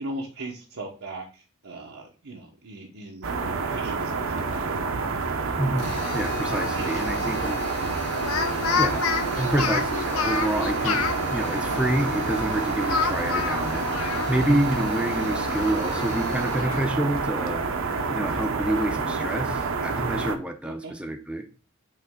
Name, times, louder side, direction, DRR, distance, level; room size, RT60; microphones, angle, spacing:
voice 1, 0.0-3.3 3.7-4.3 6.7-7.4 7.9-8.0 18.4-18.6 20.8-20.9, right 1 dB, 90° right, -2 dB, 1.0 m, -39 dB
sound 1, 3.2-20.4, right 4 dB, 65° right, 0.7 m, -28 dB
voice 2, 5.6-7.7 8.8-9.0 9.4-11.0 11.3-21.4, right 1 dB, 5° right, 4 dB, 0.5 m, -28 dB
Drill, 5.8-16.8, left 4 dB, 55° left, 1.3 m, -37 dB
Speech, 6.5-7.1 8.1-11.2 12.9-14.6 14.9-15.0 15.5-16.9, left 5 dB, 85° left, 0.8 m, -29 dB
8.2 x 3.2 x 3.6 m, 0.38 s
head